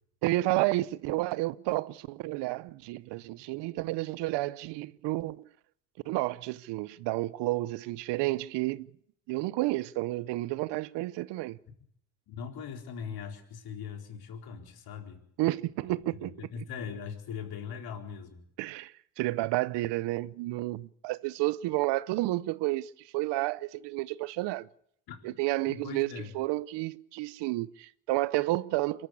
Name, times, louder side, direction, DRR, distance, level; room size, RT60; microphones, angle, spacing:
voice 1, 0.2-5.5 6.0-8.9 9.3-11.6 15.4-16.3 18.6-24.7 25.2-29.1, right 18 dB, 75° right, 0.8 m, -31 dB
voice 2, 12.3-15.2 16.2-18.4 25.1-25.2 25.7-26.3, left 7 dB, 60° left, 4.4 m, -40 dB
24.0 x 13.5 x 8.4 m
cardioid pair, 110°, 42 cm